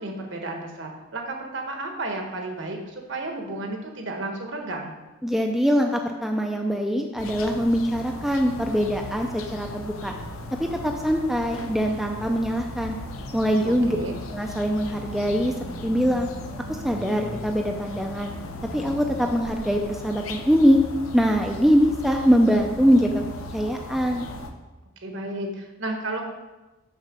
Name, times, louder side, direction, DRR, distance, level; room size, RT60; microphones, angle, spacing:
voice 1, 0.0-4.9 13.6-14.2 25.0-26.2, right 2 dB, 60° right, 2 dB, 1.4 m, -32 dB
voice 2, 5.2-10.1 10.6-13.0 13.3-14.0 14.3-15.5 15.8-16.3 16.8-18.3 18.7-20.8 21.1-23.3 23.5-24.2, equal, ahead, 2 dB, 0.5 m, -22 dB
sound 1, 7.2-24.5, left 1 dB, 85° left, 0.9 m, -37 dB
6.6 x 6.1 x 6.1 m, 1.1 s
head